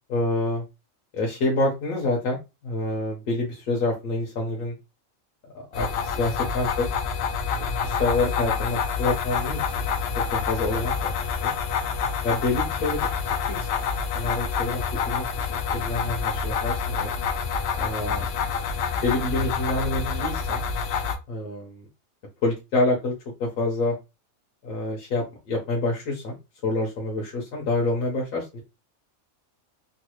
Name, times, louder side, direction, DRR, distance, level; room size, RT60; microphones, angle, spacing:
voice 1, 0.1-0.6 1.1-4.7 5.7-6.9 7.6-9.9 10.3-11.1 11.4-11.5 12.2-13.9 14.1-17.1 17.8-18.2 19.0-20.6 21.3-21.9 22.4-23.1 23.4-23.9 24.6-26.4 26.6-28.6, left 2 dB, 85° left, -1 dB, 1.3 m, -27 dB
sound 1, 5.7-21.2, left 6 dB, 65° left, 0.7 m, -27 dB
3.2 x 2.3 x 3.0 m, 0.26 s
omnidirectional pair, 1.4 m